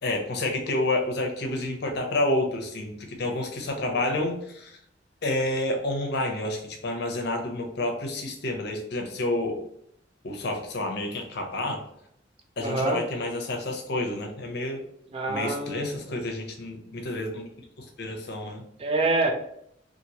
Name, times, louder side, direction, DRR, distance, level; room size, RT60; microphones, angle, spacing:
voice 1, 0.0-4.7 5.2-9.6 10.2-11.8 12.6-14.8 15.3-17.5 17.8-18.6, left 2 dB, 60° left, 3 dB, 0.6 m, -29 dB
voice 2, 12.6-13.0 15.1-16.0 18.8-19.3, right 2 dB, 30° right, 4 dB, 0.4 m, -26 dB
2.9 x 2.5 x 2.8 m, 0.71 s
head